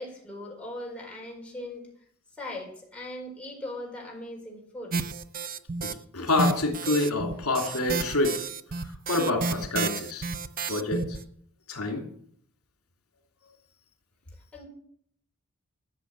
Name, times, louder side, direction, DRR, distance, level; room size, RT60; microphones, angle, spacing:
voice 1, 0.0-1.9 2.4-5.0 14.5-14.7, left 1 dB, 5° left, -2 dB, 4.4 m, -39 dB
sound 1, 4.9-5.9 6.3-11.2, right 4 dB, 40° right, 0.7 m, -31 dB
voice 2, 5.8-8.4 9.1-10.3 10.7-11.2 11.7-12.0, left 2 dB, 75° left, 2 dB, 3.0 m, -27 dB
13.5 x 6.8 x 8.9 m, 0.62 s
head